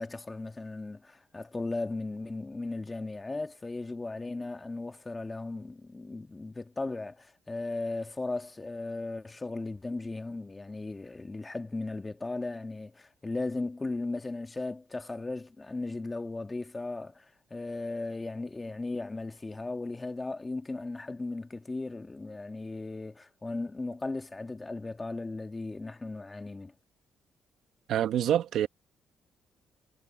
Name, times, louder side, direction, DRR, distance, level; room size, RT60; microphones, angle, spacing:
voice 1, 0.0-26.7, left 2 dB, 20° left, 2.0 m, -36 dB
voice 2, 27.9-28.7, right 10 dB, 75° right, 1.4 m, -26 dB
cardioid pair, 90°, 0 cm